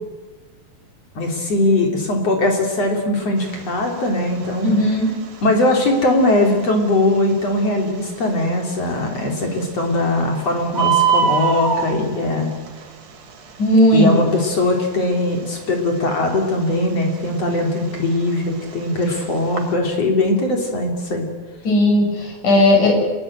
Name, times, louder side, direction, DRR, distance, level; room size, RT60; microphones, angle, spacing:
voice 1, 1.2-4.7 5.4-12.5 13.9-21.2, left 2 dB, 55° left, 2 dB, 4.3 m, -20 dB
Bird, 3.4-19.7, right 7 dB, 90° right, 4.1 m, -28 dB
voice 2, 4.6-5.1 13.6-14.1 21.6-23.0, left 1 dB, 75° left, 2 dB, 7.5 m, -15 dB
27.0 x 21.5 x 9.0 m, 1.3 s
omnidirectional pair, 3.5 m